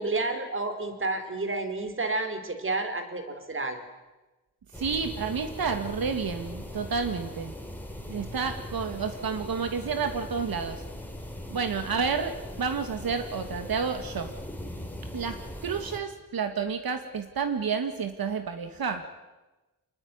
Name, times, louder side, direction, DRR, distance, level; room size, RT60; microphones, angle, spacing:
voice 1, 0.0-3.8, right 2 dB, 35° right, 8 dB, 3.9 m, -30 dB
sound 1, 4.7-16.0, left 1 dB, 5° left, 3.8 m, -40 dB
voice 2, 4.7-7.5 8.1-10.8 11.5-14.3 15.1-19.0, right 5 dB, 75° right, 8 dB, 2.1 m, -30 dB
28.0 x 20.5 x 9.6 m, 1.1 s
wide cardioid pair, 145°, 36 cm